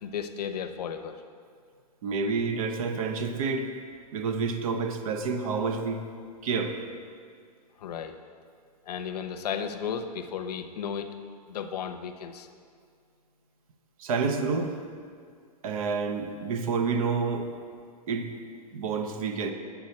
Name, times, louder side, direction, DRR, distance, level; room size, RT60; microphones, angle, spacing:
voice 1, 0.0-1.2 7.8-8.2 8.8-11.1 11.5-12.5, left 7 dB, 80° left, 8 dB, 0.8 m, -34 dB
voice 2, 2.0-3.7 4.1-6.0 6.4-6.8 14.0-14.7 15.6-17.5 18.1-18.3 18.7-19.5, right 4 dB, 60° right, 6 dB, 0.9 m, -28 dB
9.0 x 6.9 x 4.3 m, 2.2 s
hypercardioid pair, 150°, 20 cm